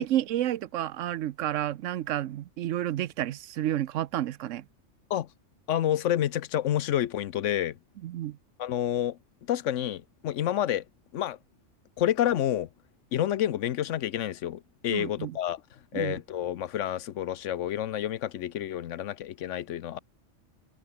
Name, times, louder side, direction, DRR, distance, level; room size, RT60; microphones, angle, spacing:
voice 1, 0.0-4.6 8.0-8.4 14.9-15.4 15.9-16.1, right 12 dB, 85° right, 1.0 m, -30 dB
voice 2, 5.7-7.8 8.6-9.2 9.5-10.8 11.1-11.4 12.0-12.7 13.1-15.6 15.9-20.0, left 11 dB, 80° left, 1.0 m, -29 dB
omnidirectional pair, 1.3 m